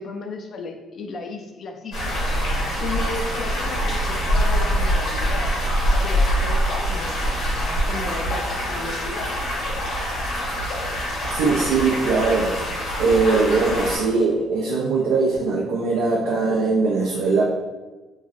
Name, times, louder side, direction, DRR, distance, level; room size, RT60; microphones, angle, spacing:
voice 1, 0.0-2.2 2.4-5.5 6.0-7.2 7.8-9.4, left 3 dB, 50° left, 4 dB, 0.4 m, -34 dB
sound 1, 1.9-14.0, equal, 85° left, 1.4 m, -24 dB
voice 2, 11.3-12.6 13.0-17.4, right 4 dB, 80° right, -3 dB, 0.4 m, -21 dB
3.0 x 2.5 x 2.4 m, 1.2 s
cardioid pair, 95°, 0 cm